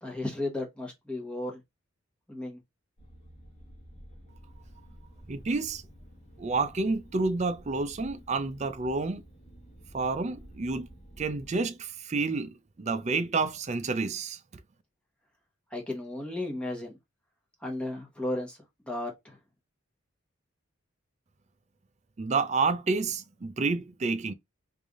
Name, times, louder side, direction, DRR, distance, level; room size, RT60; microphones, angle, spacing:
voice 1, 0.0-1.6 2.3-2.6 15.7-17.0 17.6-18.6 18.9-19.4, left 1 dB, 5° left, 1.1 m, -34 dB
sound 1, 3.0-11.6, equal, 30° left, 1.0 m, -51 dB
voice 2, 5.3-5.8 6.4-9.2 9.9-10.9 11.2-14.4 22.2-24.3, right 3 dB, 35° right, 0.4 m, -29 dB
3.3 x 2.6 x 3.5 m
head